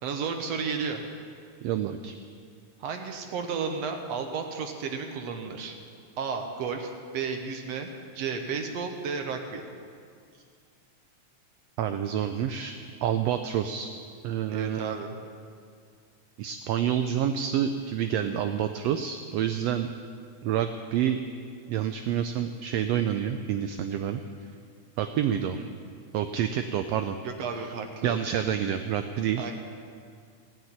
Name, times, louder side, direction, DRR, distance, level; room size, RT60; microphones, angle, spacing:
voice 1, 0.0-1.0 2.8-5.8 6.2-9.6 14.5-15.2 25.6-25.7 27.2-28.2 29.4-29.5, right 5 dB, 65° right, 4 dB, 1.8 m, -33 dB
voice 2, 1.6-2.1 11.8-13.9 14.2-14.9 16.4-19.9 20.4-21.2 21.7-24.2 25.0-25.6 26.1-27.2 27.6-27.7 28.0-29.5, right 9 dB, 85° right, 8 dB, 1.4 m, -28 dB
17.0 x 5.9 x 9.4 m, 2.2 s
omnidirectional pair, 3.4 m